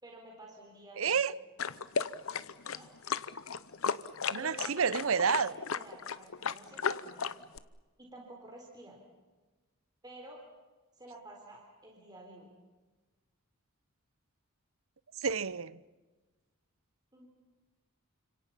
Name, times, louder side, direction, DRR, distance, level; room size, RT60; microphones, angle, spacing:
voice 1, 0.0-1.2 2.6-2.9 4.3-7.3 8.0-9.0 10.0-10.4 10.9-12.5 17.1-17.3, right 1 dB, 20° right, 4.0 m, -51 dB
voice 2, 1.0-1.3 3.8-4.0 4.3-5.5 15.2-15.8, right 6 dB, 65° right, 0.7 m, -30 dB
sound 1, 1.6-7.6, left 6 dB, 70° left, 0.9 m, -35 dB
30.0 x 26.5 x 5.8 m
head